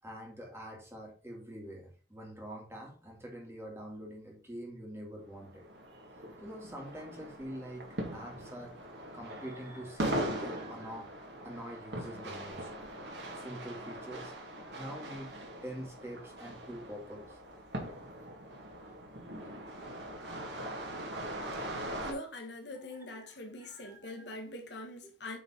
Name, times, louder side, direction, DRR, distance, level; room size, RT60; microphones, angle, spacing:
voice 1, 0.0-5.6 6.4-8.8 9.1-11.1 11.4-12.7 13.4-14.3 14.7-17.4 18.9-19.0 23.0-24.3, equal, 15° right, 2.0 m, -45 dB
sound 1, 5.2-22.1, right 1 dB, 65° right, 2.0 m, -41 dB
voice 2, 22.0-25.4, left 1 dB, 65° left, 1.5 m, -43 dB
8.4 x 3.9 x 4.4 m
head